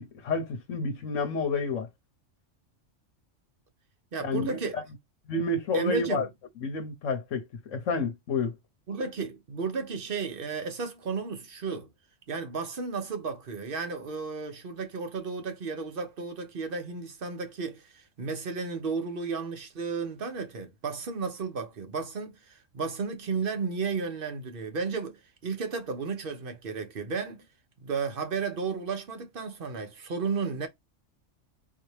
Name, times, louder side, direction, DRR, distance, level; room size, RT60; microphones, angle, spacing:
voice 1, 0.0-1.9 4.2-4.8 5.3-6.3 6.6-8.5, left 3 dB, 75° left, 1.1 m, -30 dB
voice 2, 4.1-4.7 5.7-6.3 8.9-11.9 12.3-27.4 27.8-30.7, right 5 dB, 50° right, 1.0 m, -33 dB
3.9 x 2.8 x 3.2 m
omnidirectional pair, 1.3 m